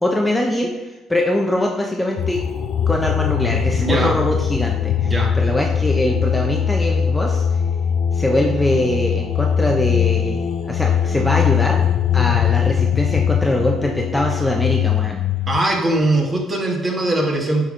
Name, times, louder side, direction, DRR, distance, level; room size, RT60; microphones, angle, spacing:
voice 1, 0.0-2.4 2.9-7.4 8.1-11.9 12.1-15.2, left 1 dB, 10° left, 0 dB, 0.8 m, -22 dB
sound 1, 2.2-15.6, left 8 dB, 65° left, 0.5 m, -20 dB
voice 2, 3.8-4.1 5.0-5.3 15.5-17.7, right 2 dB, 25° right, -1 dB, 1.9 m, -20 dB
8.0 x 4.2 x 5.1 m, 1.1 s
cardioid pair, 90°, 0 cm